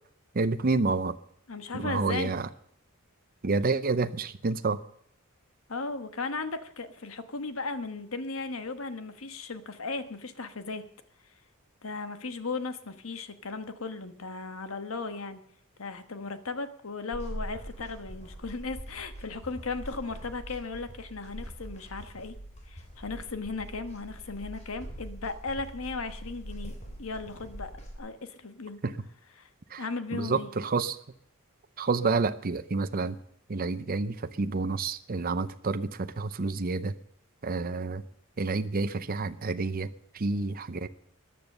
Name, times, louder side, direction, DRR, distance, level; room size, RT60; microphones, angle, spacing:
voice 1, 0.3-1.2 1.7-2.5 3.4-4.8 28.8-29.0 29.7-29.8 30.1-31.0 31.8-33.2 33.5-37.0 37.4-38.0 38.4-40.9, right 3 dB, 45° right, 11 dB, 0.6 m, -29 dB
voice 2, 1.5-2.3 5.7-10.8 11.8-15.4 15.8-22.3 22.7-26.7 27.0-27.7 28.0-28.8 29.4-29.5 29.8-30.5, left 3 dB, 80° left, 10 dB, 1.3 m, -36 dB
sound 1, 17.1-28.0, equal, 35° left, 3.9 m, -43 dB
14.0 x 10.0 x 6.6 m, 0.68 s
head